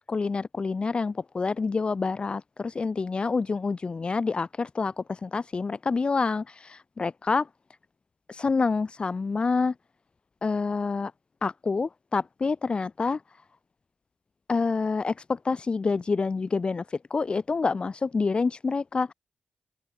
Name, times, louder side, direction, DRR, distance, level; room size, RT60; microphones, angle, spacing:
voice 1, 0.0-7.5 8.3-9.7 10.4-11.1 11.4-13.2 14.5-19.1, left 4 dB, 30° left, 1.1 m, -27 dB
open air
cardioid pair, 125°, 3 cm